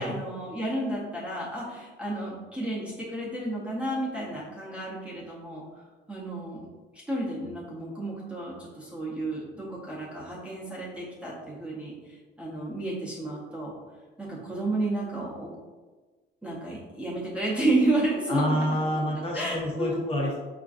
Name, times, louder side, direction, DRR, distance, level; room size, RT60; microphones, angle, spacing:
voice 1, 0.0-5.6 6.1-6.6 7.1-11.9 12.4-13.7 14.2-15.5 16.4-18.6 19.1-20.0, right 1 dB, 5° right, -6 dB, 0.6 m, -31 dB
voice 2, 18.3-20.4, equal, 30° left, -3 dB, 0.6 m, -28 dB
5.6 x 2.4 x 2.4 m, 1.3 s
cardioid pair, 175°, 21 cm